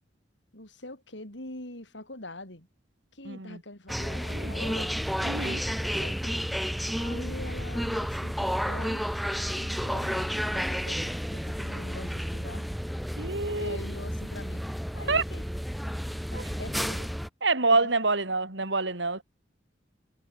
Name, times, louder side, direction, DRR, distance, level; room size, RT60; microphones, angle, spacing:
voice 1, 0.5-2.7 3.1-5.1 5.8-6.4 7.0-9.1 9.5-12.7 13.5-14.7 14.9-15.4 16.3-17.1 17.4-17.9 18.6-18.7, left 2 dB, 75° left, 5.3 m, -44 dB
voice 2, 3.3-3.6 4.3-4.5 5.2-5.7 13.2-13.8 15.0-15.2 16.3-16.4 17.4-19.2, right 3 dB, 75° right, 3.7 m, -27 dB
sound 1, 3.9-17.3, equal, ahead, 0.9 m, -31 dB
head